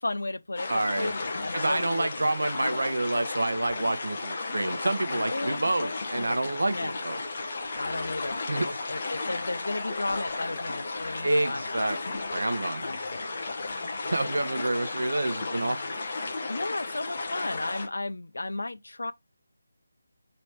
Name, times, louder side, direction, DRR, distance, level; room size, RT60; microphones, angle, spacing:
voice 1, 0.0-2.3 5.3-6.9 7.7-11.9 12.8-13.6 16.5-19.1, left 2 dB, 85° left, 0.5 m, -34 dB
sound 1, 0.6-17.9, left 3 dB, 25° left, 0.7 m, -34 dB
voice 2, 0.7-1.1 1.5-7.2 8.5-8.8 11.2-12.8 14.0-15.9, right 2 dB, 80° right, 0.9 m, -28 dB
3.4 x 3.0 x 4.4 m
figure-of-eight pair, 180°, 0 cm